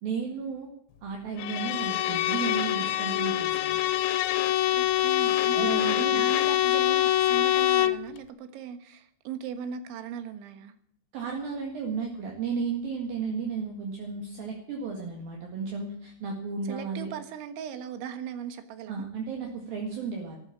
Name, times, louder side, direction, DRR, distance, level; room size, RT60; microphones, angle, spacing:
voice 1, 0.0-0.7 1.0-3.8 5.5-6.3 11.1-17.1 18.9-20.4, right 5 dB, 60° right, 1 dB, 3.3 m, -33 dB
Bowed string instrument, 1.4-8.1, left 13 dB, 90° left, 3.2 m, -25 dB
voice 2, 4.7-10.7 16.7-19.1, right 8 dB, 85° right, 9 dB, 3.8 m, -38 dB
14.5 x 11.5 x 7.3 m, 0.68 s
omnidirectional pair, 5.3 m